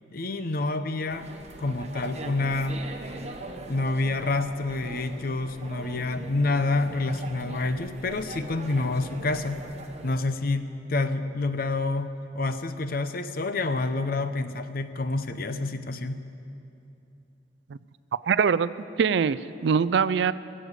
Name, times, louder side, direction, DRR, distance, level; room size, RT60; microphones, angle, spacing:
voice 1, 0.1-1.3 1.6-2.8 3.7-9.6 10.0-16.2, left 2 dB, 50° left, 10 dB, 0.7 m, -28 dB
sound 1, 1.1-10.1, right 2 dB, 35° right, 1.0 m, -41 dB
voice 2, 18.3-18.7 19.0-20.3, right 6 dB, 65° right, 17 dB, 0.4 m, -22 dB
22.5 x 7.8 x 8.1 m, 2.8 s
head